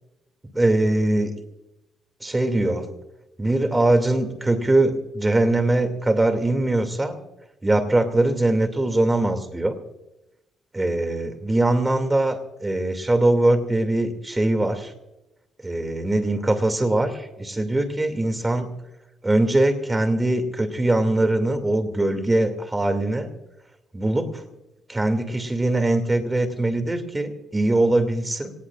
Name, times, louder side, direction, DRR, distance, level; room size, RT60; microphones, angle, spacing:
voice 1, 0.5-1.3 2.2-2.9 3.4-7.2 7.6-9.7 10.7-14.9 15.6-18.8 19.2-23.3 23.9-24.4 24.9-28.5, right 2 dB, 15° right, 7 dB, 2.4 m, -22 dB
26.0 x 18.0 x 2.5 m, 0.96 s
cardioid pair, 90°, 0 cm